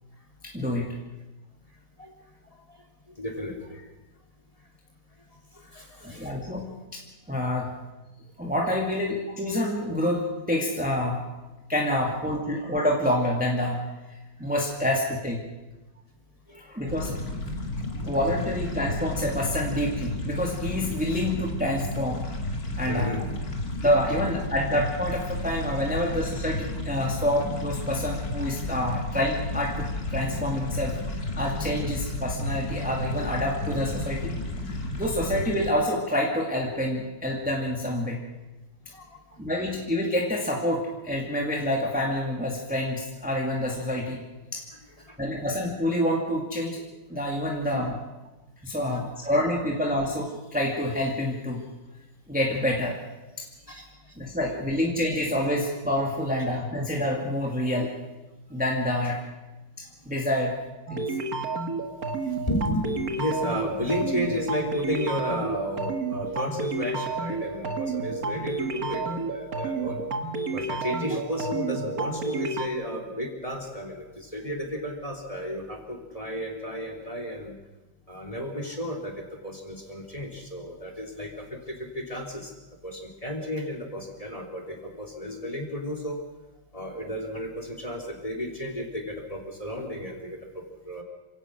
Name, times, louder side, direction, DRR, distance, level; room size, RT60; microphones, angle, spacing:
voice 1, 0.5-0.9 6.0-6.7 7.3-7.7 8.4-11.2 11.7-13.8 14.4-15.4 16.5-17.2 18.0-22.2 22.8-23.2 23.8-31.0 31.3-34.3 34.6-38.2 39.4-44.2 44.5-44.6 45.2-48.0 48.6-51.6 52.3-53.0 53.4-53.5 54.2-57.9 58.5-59.2 59.8-60.5 60.9-61.0, left 1 dB, 5° right, -1 dB, 2.3 m, -27 dB
voice 2, 3.2-3.8 5.5-6.3 7.4-7.5 16.5-16.6 22.8-23.4 38.9-39.4 45.0-45.2 47.7-47.9 48.9-49.0 53.7-54.1 62.4-70.0 70.5-77.6 78.1-79.1 79.4-82.5 82.8-86.2 86.7-91.0, equal, 20° left, 3 dB, 3.3 m, -33 dB
sound 1, 16.9-35.7, left 1 dB, 50° left, 2.9 m, -32 dB
sound 2, 60.9-72.7, right 3 dB, 50° right, 1.9 m, -31 dB
28.0 x 17.0 x 6.3 m, 1.1 s
omnidirectional pair, 2.0 m